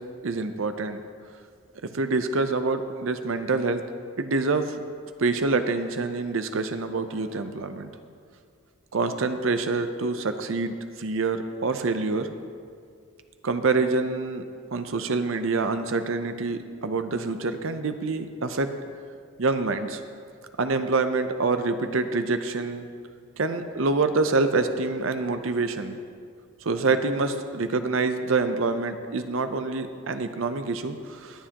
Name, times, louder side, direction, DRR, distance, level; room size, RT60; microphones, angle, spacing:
voice 1, 0.2-1.0 1.9-3.8 4.2-4.8 5.2-7.9 8.9-12.3 13.4-14.4 14.7-18.7 19.4-20.0 20.6-22.9 23.4-26.0 26.6-31.5, right 3 dB, 65° right, 9 dB, 0.6 m, -26 dB
20.5 x 7.4 x 2.9 m, 2.3 s
head